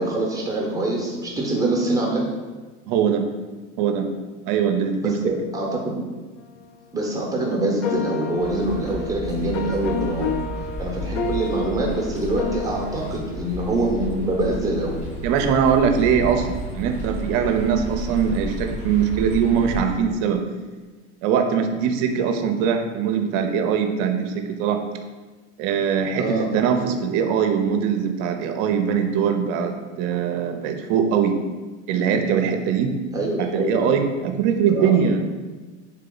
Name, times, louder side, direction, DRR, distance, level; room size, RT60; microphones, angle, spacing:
voice 1, 0.0-2.2 5.0-6.0 6.9-10.4 10.8-15.0 26.2-26.5 33.1-33.9 34.7-35.1, right 1 dB, 10° right, -2 dB, 1.0 m, -24 dB
voice 2, 2.9-3.3 3.8-4.1 4.5-5.2 15.2-20.4 21.2-24.8 25.6-31.4 31.9-32.9 33.4-35.2, right 7 dB, 55° right, 6 dB, 0.6 m, -22 dB
sound 1, 7.7-12.9, left 4 dB, 80° left, 0.6 m, -30 dB
sound 2, 8.4-19.9, equal, 20° left, 1.0 m, -33 dB
3.7 x 2.8 x 3.8 m, 1.3 s
supercardioid pair, 110°, 36 cm